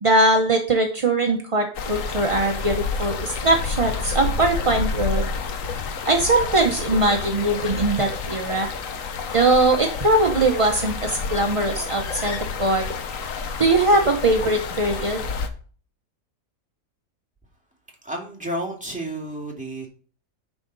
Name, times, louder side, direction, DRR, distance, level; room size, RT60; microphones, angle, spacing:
voice 1, 0.0-5.3 6.1-8.7 9.3-12.8 13.6-15.2, right 2 dB, 35° right, 2 dB, 0.5 m, -21 dB
sound 1, 1.7-15.5, left 5 dB, 60° left, 1.2 m, -29 dB
voice 2, 18.0-19.9, right 1 dB, 5° right, -2 dB, 2.1 m, -31 dB
9.8 x 4.8 x 4.0 m, 0.42 s
omnidirectional pair, 1.7 m